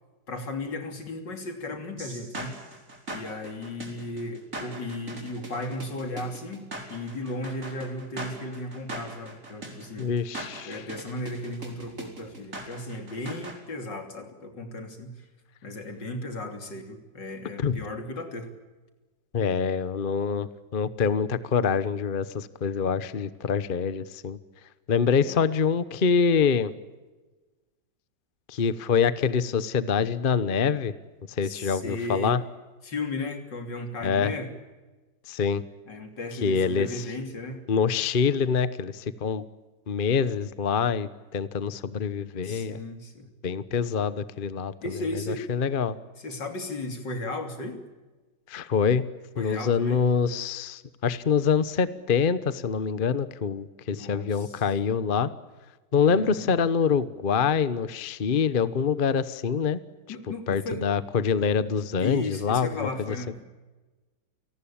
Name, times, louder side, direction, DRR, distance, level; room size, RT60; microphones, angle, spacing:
voice 1, 0.3-2.6 3.1-10.1 10.7-15.3 15.6-18.5 25.2-25.4 31.4-32.3 32.8-34.5 35.9-37.6 42.4-43.3 44.8-45.5 46.2-47.8 49.4-50.1 53.9-54.6 56.1-56.5 60.1-60.9 62.0-63.5, left 2 dB, 80° left, 7 dB, 3.8 m, -35 dB
sound 1, 2.0-13.6, right 2 dB, 45° right, 4.9 m, -40 dB
voice 2, 10.0-10.8 17.6-17.8 19.3-24.4 24.9-26.7 28.5-30.9 31.4-32.4 34.0-34.3 35.3-35.6 36.4-36.9 37.7-39.4 39.9-42.8 43.4-44.7 45.3-46.0 48.5-49.1 49.4-55.3 55.9-59.8 60.5-62.9, left 6 dB, 35° left, 15 dB, 1.0 m, -25 dB
29.0 x 19.0 x 8.7 m, 1.2 s
omnidirectional pair, 1.9 m